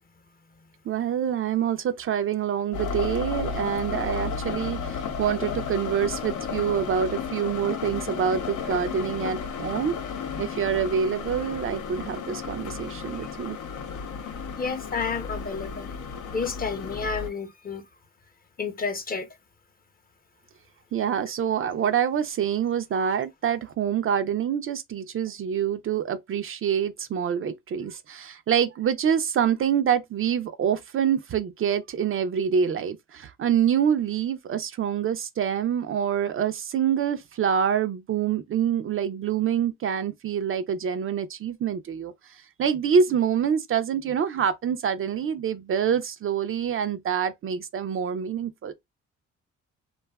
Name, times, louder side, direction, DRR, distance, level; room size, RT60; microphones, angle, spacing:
voice 1, 0.9-10.0 10.4-13.6 20.9-48.7, right 8 dB, 45° right, 0.4 m, -26 dB
sound 1, 2.7-17.3, left 6 dB, 70° left, 0.7 m, -33 dB
voice 2, 14.6-15.9 16.3-17.8 18.6-19.3, left 5 dB, 30° left, 0.7 m, -30 dB
2.6 x 2.3 x 2.2 m
supercardioid pair, 70°, 31 cm